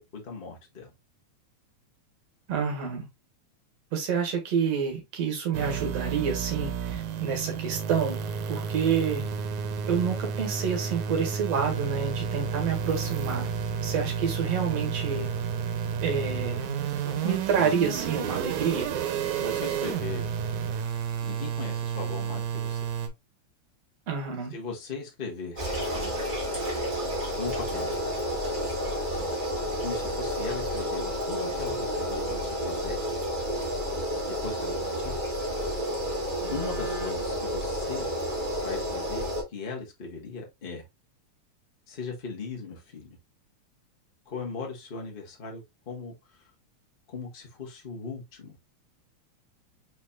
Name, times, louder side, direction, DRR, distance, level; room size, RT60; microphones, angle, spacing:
voice 1, 0.1-0.9 17.0-17.3 19.3-20.3 21.2-22.8 24.5-25.6 27.4-27.9 29.8-33.3 34.3-35.3 36.5-38.1 38.6-40.8 41.9-43.2 44.3-46.4 47.1-48.6, left 4 dB, 70° left, 0.5 m, -38 dB
voice 2, 2.5-3.1 3.9-8.2 8.5-9.3 9.9-13.5 13.8-15.3 16.0-16.7 17.2-19.0 24.1-24.6, right 6 dB, 60° right, 2.5 m, -28 dB
sound 1, 5.5-23.1, right 7 dB, 85° right, 2.2 m, -31 dB
sound 2, 25.6-39.4, equal, 25° right, 1.3 m, -30 dB
5.0 x 4.1 x 2.3 m
omnidirectional pair, 3.3 m